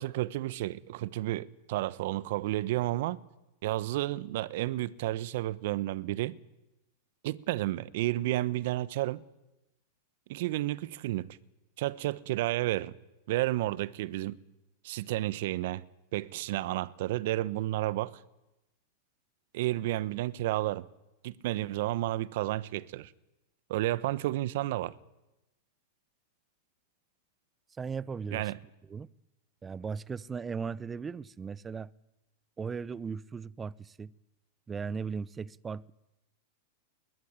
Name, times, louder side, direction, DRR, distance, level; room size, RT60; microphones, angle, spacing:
voice 1, 0.0-3.2 3.6-6.3 7.2-9.2 10.3-11.3 11.8-12.9 13.3-14.4 14.8-15.8 16.1-18.2 19.5-20.8 21.2-23.1 23.7-25.0 28.3-28.6, right 16 dB, 65° right, 1.1 m, -31 dB
voice 2, 27.8-28.5 28.9-29.1 29.6-31.9 32.6-34.1 34.7-35.9, right 5 dB, 20° right, 0.8 m, -37 dB
20.5 x 20.5 x 9.6 m
hypercardioid pair, 105°, 0 cm